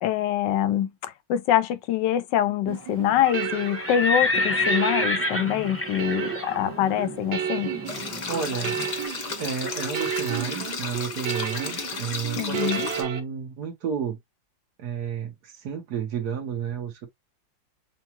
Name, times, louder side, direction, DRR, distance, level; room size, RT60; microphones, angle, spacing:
voice 1, 0.0-7.7 12.3-12.9, left 11 dB, 75° left, 1.3 m, -25 dB
sound 1, 2.7-13.2, right 8 dB, 80° right, 1.7 m, -33 dB
Livestock farm animals working animals, 3.1-8.9, left 2 dB, 10° left, 0.9 m, -29 dB
sound 2, 7.9-13.0, left 5 dB, 50° left, 1.1 m, -34 dB
voice 2, 8.3-8.8 9.4-12.7 13.0-14.2 14.8-17.1, right 7 dB, 60° right, 1.6 m, -31 dB
7.0 x 2.3 x 2.9 m
omnidirectional pair, 2.0 m